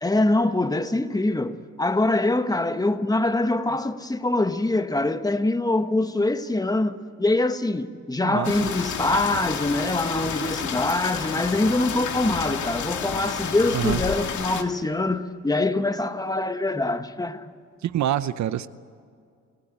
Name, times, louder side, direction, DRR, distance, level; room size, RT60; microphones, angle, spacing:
voice 1, 0.0-17.5, left 2 dB, 10° left, 1.3 m, -24 dB
voice 2, 8.2-8.7 13.7-14.0 17.8-18.7, right 11 dB, 65° right, 0.8 m, -26 dB
sound 1, 8.4-14.6, left 7 dB, 70° left, 2.2 m, -30 dB
29.5 x 17.0 x 9.0 m
cardioid pair, 90°, 30 cm